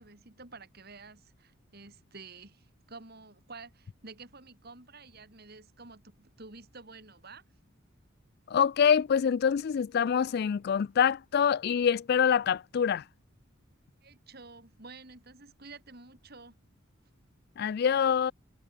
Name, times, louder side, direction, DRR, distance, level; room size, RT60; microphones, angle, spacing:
voice 1, 0.0-7.4 14.0-16.6, right 3 dB, 50° right, 3.3 m, -50 dB
voice 2, 8.5-13.0 17.6-18.3, left 7 dB, 50° left, 0.3 m, -25 dB
head